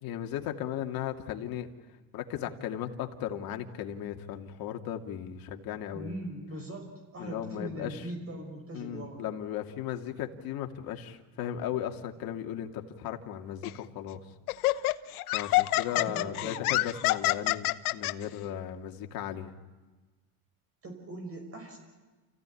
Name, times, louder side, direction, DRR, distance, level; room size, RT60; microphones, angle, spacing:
voice 1, 0.0-1.7 2.1-6.1 7.2-8.1 8.7-14.2 14.6-14.9 15.3-19.5, left 10 dB, 50° left, 4 dB, 2.5 m, -36 dB
voice 2, 5.9-9.2 15.9-16.7 20.8-21.8, right 1 dB, 30° right, 3 dB, 5.9 m, -41 dB
Laughter, 13.6-13.8 14.5-18.1, left 19 dB, 90° left, 1.0 m, -27 dB
29.0 x 16.0 x 9.9 m, 1.3 s
supercardioid pair, 115°, 43 cm